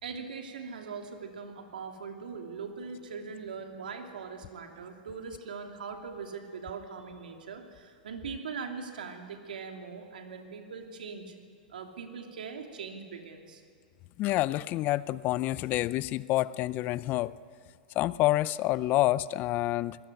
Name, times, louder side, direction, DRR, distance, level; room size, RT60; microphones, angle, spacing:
voice 1, 0.0-11.3 11.7-13.6, right 5 dB, 85° right, 4 dB, 3.0 m, -41 dB
voice 2, 14.2-17.3 18.0-20.0, left 16 dB, 40° left, 19 dB, 0.6 m, -28 dB
25.5 x 19.0 x 9.2 m, 2.1 s
hypercardioid pair, 115°, 5 cm